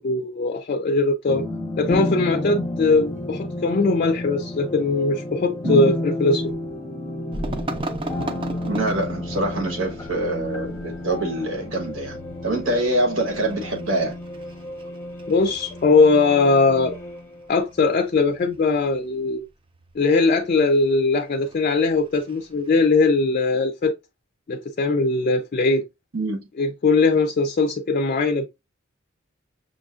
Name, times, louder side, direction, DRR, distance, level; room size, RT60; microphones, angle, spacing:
voice 1, 0.0-1.4 1.8-6.5 15.3-17.0 17.5-19.4 20.0-24.0 24.5-25.8 26.6-28.5, left 3 dB, 40° left, 0.4 m, -20 dB
sound 1, 1.3-17.8, left 1 dB, 15° left, 0.7 m, -31 dB
voice 2, 5.6-5.9 8.7-14.1 26.1-26.4, right 1 dB, 80° right, 1.1 m, -25 dB
sound 2, 7.3-22.7, right 2 dB, 25° right, 0.4 m, -39 dB
6.1 x 2.4 x 2.4 m
head